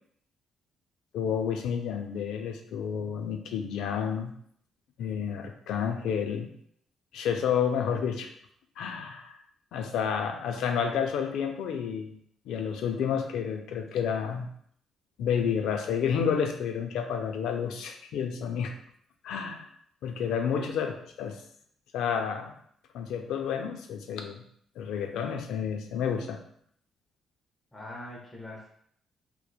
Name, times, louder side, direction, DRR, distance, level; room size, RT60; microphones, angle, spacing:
voice 1, 1.1-4.3 5.0-6.5 7.1-8.3 8.8-9.3 9.7-12.1 12.5-14.5 15.2-18.7 19.2-19.7 20.0-21.4 21.9-22.5 22.9-24.4 24.8-26.4, left 7 dB, 85° left, 5 dB, 0.3 m, -30 dB
voice 2, 27.7-28.7, left 1 dB, 15° left, -3 dB, 0.7 m, -42 dB
2.9 x 2.1 x 2.3 m, 0.66 s
cardioid pair, 90°, 0 cm